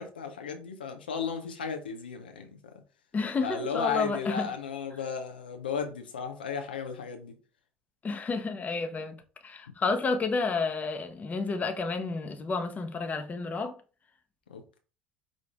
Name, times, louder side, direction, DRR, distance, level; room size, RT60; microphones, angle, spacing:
voice 1, 0.0-2.5 3.4-7.3 14.5-14.8, left 6 dB, 90° left, 0.5 m, -34 dB
voice 2, 3.1-4.5 8.0-9.1 9.4-13.8, left 4 dB, 30° left, 0.8 m, -30 dB
5.0 x 2.5 x 3.4 m
hypercardioid pair, 60°, 5 cm